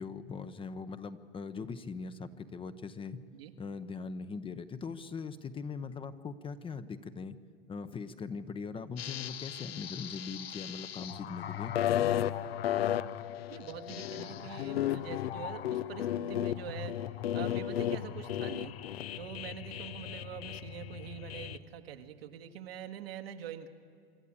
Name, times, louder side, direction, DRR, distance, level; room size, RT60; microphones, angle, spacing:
voice 1, 0.0-3.2 3.6-7.4 7.7-11.7, left 5 dB, 20° left, 12 dB, 0.8 m, -41 dB
sound 1, 9.0-21.6, left 11 dB, 85° left, 0.8 m, -35 dB
voice 2, 13.5-17.1 17.3-18.8 19.2-23.7, right 9 dB, 85° right, 6 dB, 1.7 m, -44 dB
26.0 x 12.0 x 8.6 m, 2.4 s
hypercardioid pair, 120°, 29 cm